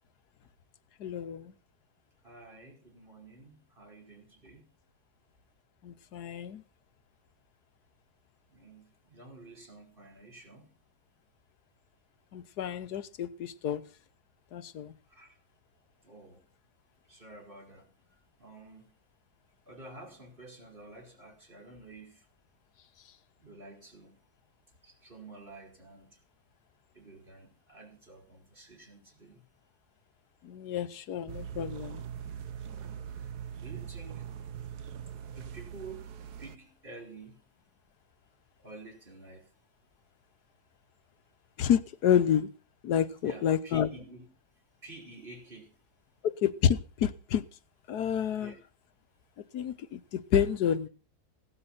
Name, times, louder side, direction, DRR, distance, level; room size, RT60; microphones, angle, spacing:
voice 1, 1.0-1.5 5.8-6.6 12.3-13.8 14.5-14.9 30.4-32.0 41.6-42.5 42.8-43.9 46.2-47.4 47.9-48.6 49.5-50.9, left 9 dB, 90° left, 1.5 m, -29 dB
voice 2, 2.2-4.7 8.5-10.7 15.1-15.4 16.0-16.4 17.1-17.9 18.4-18.9 19.7-22.3 23.4-24.2 24.8-26.2 26.9-29.4 32.6-33.1 33.5-34.3 35.3-36.1 36.4-37.4 38.6-39.5 43.2-44.3 44.8-45.8 48.3-48.6, right 3 dB, 35° right, 5.4 m, -50 dB
sound 1, 31.3-36.6, right 8 dB, 85° right, 1.5 m, -41 dB
17.0 x 12.0 x 5.7 m
omnidirectional pair, 1.6 m